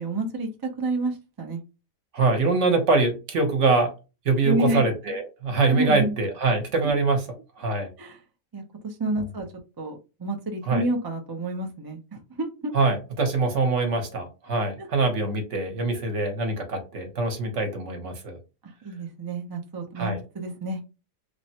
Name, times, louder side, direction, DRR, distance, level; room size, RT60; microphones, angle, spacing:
voice 1, 0.0-1.6 4.4-4.8 5.7-6.1 6.8-7.0 8.0-8.2 8.5-9.5 9.8-12.7 14.8-15.1 18.6-20.8, right 2 dB, 35° right, 0.3 m, -29 dB
voice 2, 2.1-3.9 4.2-7.2 7.6-7.9 10.7-10.8 12.7-18.4 20.0-20.2, right 3 dB, 65° right, 1.1 m, -24 dB
3.2 x 2.1 x 2.7 m
omnidirectional pair, 1.4 m